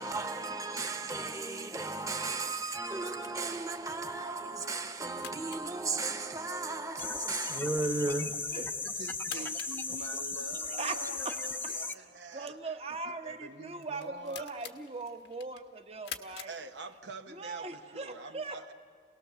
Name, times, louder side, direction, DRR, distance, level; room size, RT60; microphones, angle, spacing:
voice 1, 0.0-8.4, right 3 dB, 20° right, 1.2 m, -35 dB
sound 1, 1.7-17.3, left 8 dB, 85° left, 1.3 m, -51 dB
sound 2, 7.0-11.9, left 4 dB, 10° left, 0.6 m, -36 dB
voice 2, 8.9-12.6 13.1-14.5 16.5-18.7, right 3 dB, 85° right, 1.0 m, -46 dB
voice 3, 10.7-11.0 11.2-11.4 12.3-16.5 17.3-18.7, right 3 dB, 35° right, 1.1 m, -40 dB
28.0 x 18.5 x 7.0 m
head